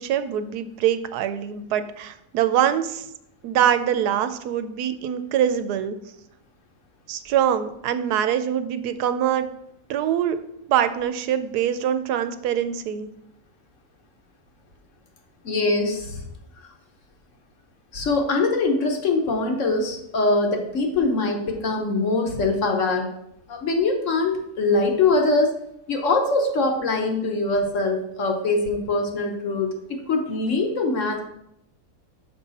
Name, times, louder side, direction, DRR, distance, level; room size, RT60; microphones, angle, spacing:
voice 1, 0.0-3.1 3.4-6.0 7.1-9.5 9.9-10.4 10.7-13.1, right 10 dB, 90° right, 11 dB, 1.1 m, -24 dB
voice 2, 15.4-16.2 16.6-16.7 17.9-23.1 23.5-25.5 25.9-31.2, left 3 dB, 55° left, 3 dB, 1.2 m, -23 dB
6.3 x 5.4 x 4.1 m, 0.79 s
omnidirectional pair, 1.6 m